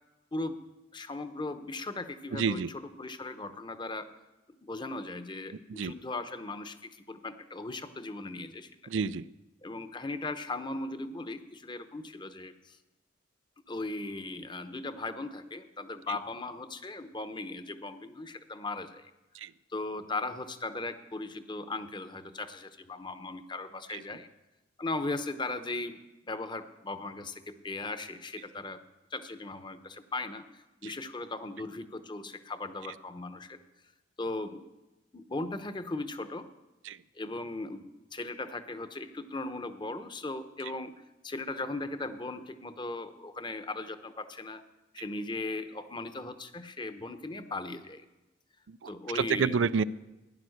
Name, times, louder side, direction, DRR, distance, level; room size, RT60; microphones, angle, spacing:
voice 1, 0.9-4.1 4.6-8.7 9.6-12.8 13.7-19.1 19.7-24.3 24.8-26.0 26.2-28.8 29.1-33.6 34.2-34.6 35.1-36.5 37.1-37.8 38.1-40.9 41.2-44.6 44.9-48.1 48.8-49.7, left 2 dB, 25° left, 10 dB, 0.8 m, -38 dB
voice 2, 2.3-2.7 5.7-5.9 8.9-9.2 19.4-19.5 23.9-24.0 36.9-37.0 48.7-49.8, right 5 dB, 85° right, 16 dB, 0.4 m, -29 dB
16.0 x 10.5 x 6.5 m, 1.0 s
head